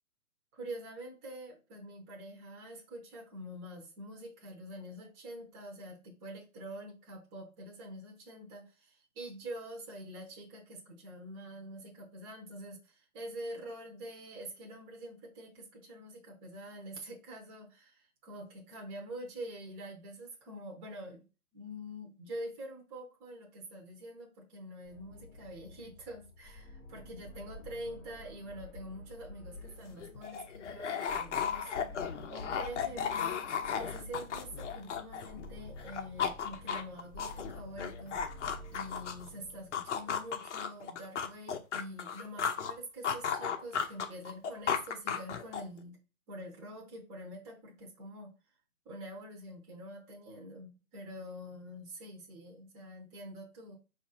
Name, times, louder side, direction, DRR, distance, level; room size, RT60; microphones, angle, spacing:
voice 1, 0.5-21.2 21.5-33.4 33.7-38.2 38.7-46.0 46.3-48.3 48.8-53.7, equal, 20° right, -2 dB, 0.8 m, -46 dB
sound 1, 24.8-40.5, left 2 dB, 15° left, 0.7 m, -50 dB
sound 2, 29.6-29.7 30.0-35.5 35.8-39.3 39.7-42.7 43.0-45.8, left 7 dB, 55° left, 0.6 m, -35 dB
4.6 x 2.6 x 4.1 m, 0.32 s
hypercardioid pair, 140°, 44 cm